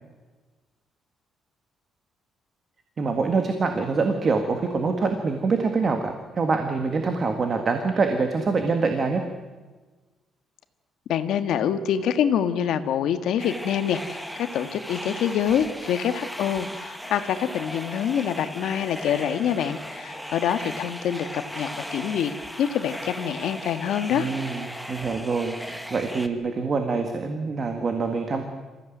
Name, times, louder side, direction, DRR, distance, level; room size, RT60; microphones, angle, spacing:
voice 1, 3.0-9.2 24.1-25.6 25.9-28.4, right 4 dB, 30° right, 5 dB, 1.8 m, -25 dB
voice 2, 11.1-24.3, left 9 dB, 75° left, 9 dB, 1.6 m, -26 dB
sound 1, 13.4-26.3, equal, ahead, 1.3 m, -37 dB
27.0 x 15.5 x 9.3 m, 1.3 s
cardioid pair, 165°, 0 cm